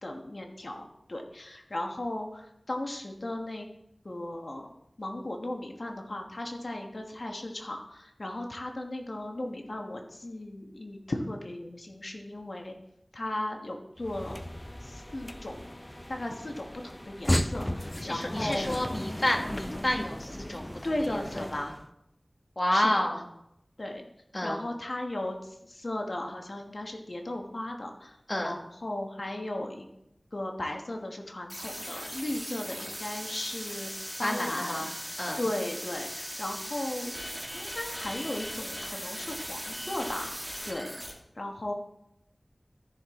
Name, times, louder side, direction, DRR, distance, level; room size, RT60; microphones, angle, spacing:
voice 1, 0.0-3.7 4.0-4.7 5.0-12.7 13.1-14.4 14.8-15.8 16.1-18.8 20.8-21.6 22.7-23.1 23.8-24.1 24.4-29.9 30.3-33.9 34.2-37.1 37.5-41.7, left 1 dB, 65° left, 3 dB, 1.3 m, -36 dB
sound 1, 14.0-21.9, left 1 dB, 20° left, 0.5 m, -35 dB
voice 2, 18.0-21.7 22.6-23.2 24.3-24.6 28.3-28.6 34.2-34.9 35.2-35.4, left 1 dB, 40° left, 1 dB, 1.7 m, -30 dB
sound 2, 31.5-41.1, equal, ahead, 2.1 m, -39 dB
13.5 x 6.0 x 3.7 m, 0.81 s
wide cardioid pair, 50°, 0 cm